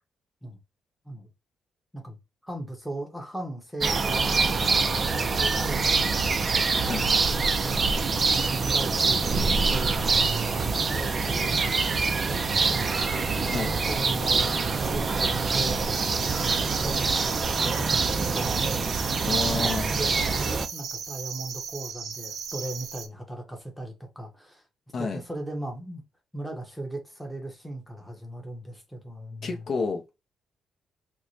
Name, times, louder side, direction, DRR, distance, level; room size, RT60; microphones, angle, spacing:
voice 1, 2.4-4.4 5.2-8.0 8.3-9.9 10.5-13.0 13.5-14.6 14.9-15.8 16.3-18.6 19.2-24.6 25.0-26.0 26.3-29.6, right 1 dB, ahead, 0.8 m, -38 dB
sound 1, 3.8-20.7, right 4 dB, 30° right, 0.4 m, -25 dB
sound 2, 15.9-23.1, right 6 dB, 70° right, 0.7 m, -37 dB
voice 2, 19.3-19.9 24.9-25.2 29.4-30.0, left 4 dB, 45° left, 0.6 m, -29 dB
4.5 x 2.1 x 2.6 m
cardioid pair, 160°, 0 cm